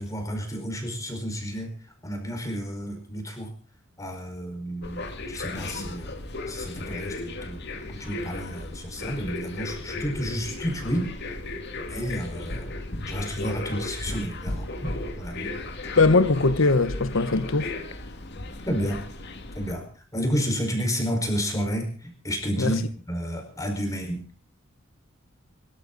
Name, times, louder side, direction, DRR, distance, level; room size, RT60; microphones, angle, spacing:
voice 1, 0.0-1.7 2.0-3.5 4.0-6.2 6.5-7.6 7.9-11.1 11.9-12.7 13.1-15.6 18.6-19.0 19.5-24.2, equal, 15° left, 4.9 m, -31 dB
sound 1, 4.8-19.7, left 2 dB, 55° left, 2.3 m, -35 dB
voice 2, 16.0-17.7 22.6-22.7, left 3 dB, 75° left, 1.1 m, -20 dB
25.5 x 12.5 x 4.0 m
head